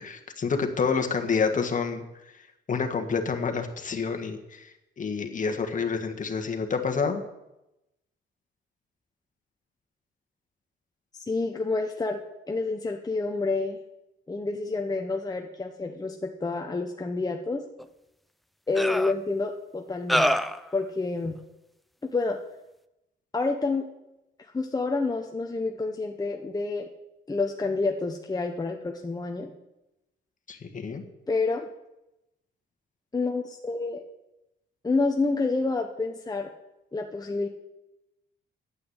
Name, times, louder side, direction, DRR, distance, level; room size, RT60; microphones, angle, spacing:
voice 1, 0.0-2.0 2.7-4.7 5.0-7.2 30.5-31.0, left 5 dB, 40° left, 4 dB, 1.6 m, -28 dB
voice 2, 11.2-13.8 14.3-17.6 18.7-20.3 20.7-21.4 22.0-22.4 23.3-23.9 24.5-26.9 27.3-29.5 31.3-31.7 33.1-34.0 34.8-36.5 36.9-37.5, left 3 dB, 20° left, 3 dB, 0.9 m, -28 dB
sound 1, 17.8-17.9 18.7-19.1 20.1-20.6, equal, ahead, 0.6 m, -24 dB
9.3 x 8.4 x 8.0 m, 0.94 s
cardioid pair, 90°, 20 cm